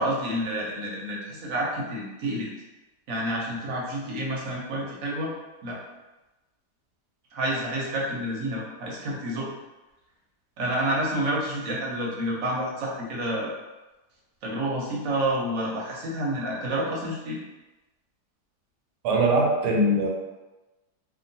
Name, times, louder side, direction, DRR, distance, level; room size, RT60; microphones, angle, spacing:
voice 1, 0.0-2.5 3.1-5.3 5.6-5.8 7.3-9.5 10.6-13.5 14.4-17.4, right 1 dB, 65° right, -3 dB, 0.9 m, -29 dB
voice 2, 19.0-20.1, right 1 dB, 80° right, -1 dB, 1.2 m, -21 dB
2.9 x 2.3 x 2.6 m, 1.1 s
omnidirectional pair, 1.8 m